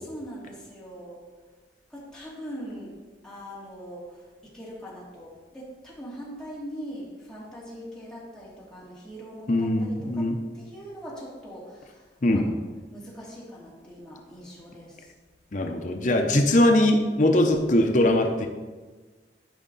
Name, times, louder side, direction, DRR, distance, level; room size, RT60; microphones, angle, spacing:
voice 1, 0.1-1.3 1.9-2.9 3.2-12.5 12.9-15.1, equal, 5° left, -7 dB, 2.6 m, -41 dB
voice 2, 9.5-10.4 12.2-12.5 15.5-18.5, left 1 dB, 45° left, 4 dB, 0.8 m, -21 dB
13.0 x 5.5 x 4.1 m, 1.3 s
head